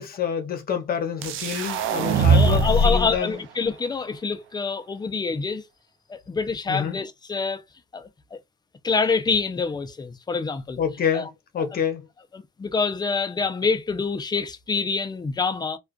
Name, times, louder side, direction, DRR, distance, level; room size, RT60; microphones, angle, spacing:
voice 1, 0.0-3.4 6.7-7.0 10.8-12.1, left 7 dB, 50° left, 0.8 m, -28 dB
sound 1, 1.2-3.2, right 3 dB, 80° right, 0.4 m, -20 dB
voice 2, 2.2-5.6 6.1-7.6 7.9-8.4 8.8-10.8 11.1-11.3 12.3-15.8, left 4 dB, 20° left, 0.4 m, -26 dB
2.3 x 2.3 x 2.4 m
cardioid pair, 90°, 20 cm